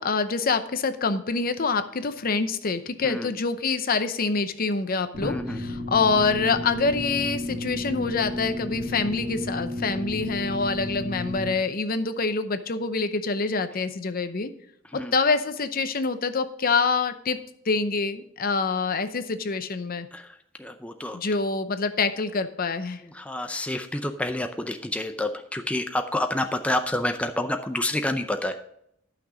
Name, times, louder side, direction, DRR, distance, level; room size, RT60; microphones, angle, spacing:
voice 1, 0.0-14.5 14.9-17.4 17.7-20.1 21.1-23.0, left 4 dB, 50° left, 10 dB, 0.7 m, -26 dB
sound 1, 5.1-11.5, left 1 dB, 50° right, 2.0 m, -32 dB
voice 2, 5.2-5.6 14.9-15.1 20.1-20.3 20.6-21.2 23.1-28.6, left 1 dB, 5° left, 6 dB, 0.5 m, -28 dB
11.5 x 6.0 x 5.0 m, 0.73 s
head